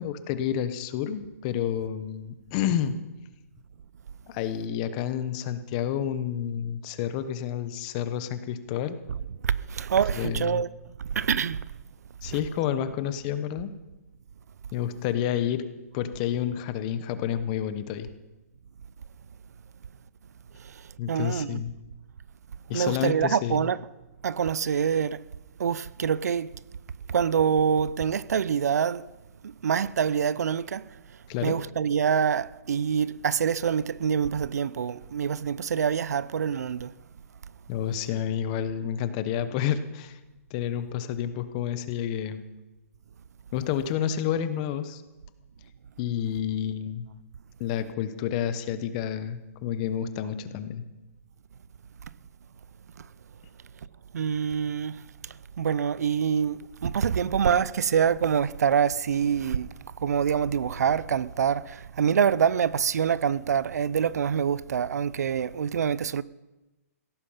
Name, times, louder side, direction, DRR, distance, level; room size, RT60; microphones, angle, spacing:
voice 1, 0.0-3.0 4.3-9.0 10.1-10.6 12.2-13.7 14.7-15.6 15.9-18.1 21.0-21.7 22.7-23.7 31.3-31.5 37.7-40.2 40.5-42.4 43.5-45.0 46.0-47.1 47.6-50.8, left 9 dB, 25° left, 1.0 m, -29 dB
voice 2, 9.4-10.7 11.0-11.7 12.3-12.4 20.6-20.8 21.1-21.6 22.7-23.8 24.2-25.2 25.6-26.5 27.1-29.1 29.4-30.9 31.4-36.9 54.1-55.0 55.2-66.2, right 7 dB, 80° right, 0.6 m, -26 dB
17.0 x 14.5 x 5.7 m
hypercardioid pair, 165°, 9 cm